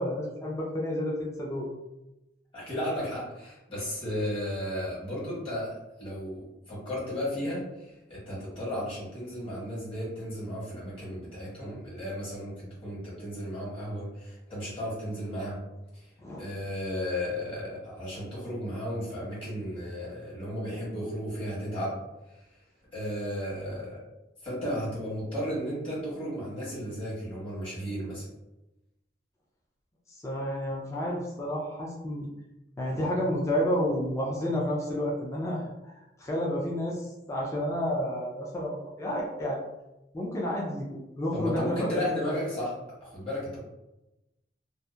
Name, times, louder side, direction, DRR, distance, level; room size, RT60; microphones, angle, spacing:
voice 1, 0.0-1.7 16.2-16.5 30.2-32.3 32.8-35.6 36.2-39.6 40.1-42.0, equal, 15° left, -3 dB, 0.4 m, -30 dB
voice 2, 2.5-5.7 6.0-15.6 15.9-16.1 16.4-22.0 22.3-22.5 22.9-24.0 24.4-28.3 41.3-42.7 43.0-43.6, equal, 35° left, -7 dB, 1.2 m, -34 dB
2.7 x 2.1 x 2.2 m, 0.95 s
head